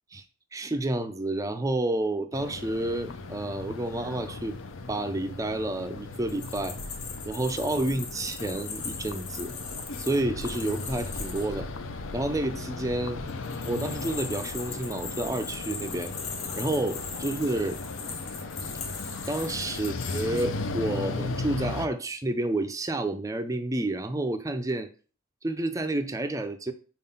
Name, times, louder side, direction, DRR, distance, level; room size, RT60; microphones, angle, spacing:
voice 1, 0.5-4.6 4.9-6.8 7.3-9.5 10.0-11.7 12.1-13.2 13.6-16.1 16.6-17.8 19.3-24.9 25.4-26.7, right 2 dB, 15° right, 0.4 m, -30 dB
sound 1, 2.3-21.9, left 3 dB, 60° left, 0.6 m, -37 dB
sound 2, 6.1-11.4 13.3-20.4, left 5 dB, 85° left, 1.2 m, -39 dB
4.6 x 3.7 x 5.5 m
head